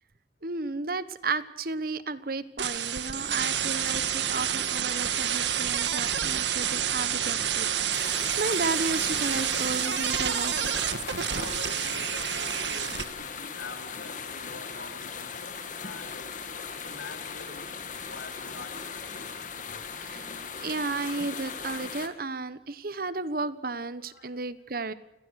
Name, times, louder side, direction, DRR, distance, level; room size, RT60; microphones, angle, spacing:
voice 1, 0.4-11.2 20.0-20.2 20.6-24.9, right 3 dB, 55° right, 15 dB, 1.2 m, -33 dB
sound 1, 2.6-13.0, right 9 dB, 90° right, 1.6 m, -29 dB
sound 2, 7.9-22.1, left 6 dB, 45° left, 2.3 m, -38 dB
voice 2, 11.3-19.9 24.0-24.4, left 3 dB, 85° left, 7 dB, 3.1 m, -46 dB
29.0 x 18.5 x 6.5 m, 0.96 s
head